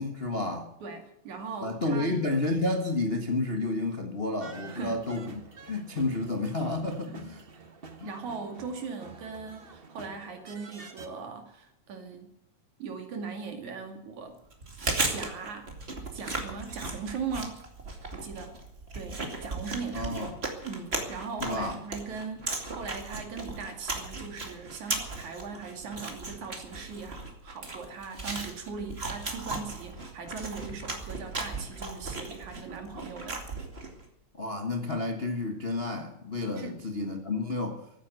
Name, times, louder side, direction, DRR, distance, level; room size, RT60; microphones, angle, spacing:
voice 1, 0.0-0.7 1.6-5.4 5.7-7.4 8.0-8.1 19.9-20.4 21.4-21.8 34.3-37.8, left 2 dB, 65° left, 4 dB, 0.5 m, -30 dB
voice 2, 0.8-2.1 4.7-5.0 7.1-7.2 7.5-7.6 8.0-12.3 12.8-14.4 15.1-15.7 16.1-17.6 18.1-18.6 18.9-20.3 20.6-33.4 36.6-36.8, right 5 dB, 65° right, 5 dB, 3.6 m, -39 dB
sound 1, 4.4-11.1, right 3 dB, 90° right, 0.5 m, -48 dB
Chewing mastication, 14.5-34.0, right 3 dB, 20° right, 2.3 m, -36 dB
15.0 x 9.7 x 9.3 m, 0.80 s
omnidirectional pair, 3.6 m